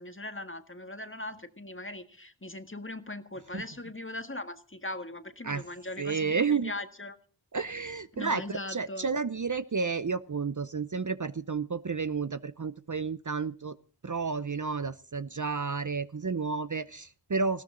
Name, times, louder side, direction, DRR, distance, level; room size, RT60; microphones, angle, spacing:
voice 1, 0.0-7.2 8.1-9.1, left 2 dB, 25° left, 9 dB, 1.7 m, -40 dB
voice 2, 6.0-6.7 7.5-13.8 14.0-17.6, right 5 dB, 40° right, 14 dB, 0.7 m, -31 dB
19.0 x 16.5 x 3.9 m, 0.42 s
wide cardioid pair, 55°, 45 cm